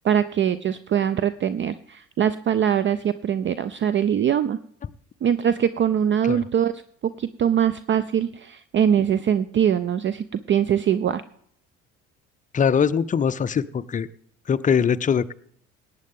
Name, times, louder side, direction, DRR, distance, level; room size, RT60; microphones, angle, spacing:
voice 1, 0.0-4.6 5.2-6.7 7.0-11.2, right 9 dB, 30° right, 15 dB, 0.5 m, -22 dB
voice 2, 12.5-14.1 14.5-15.3, left 7 dB, 20° left, 13 dB, 0.5 m, -22 dB
17.5 x 8.8 x 3.6 m, 0.64 s
hypercardioid pair, 55°, 36 cm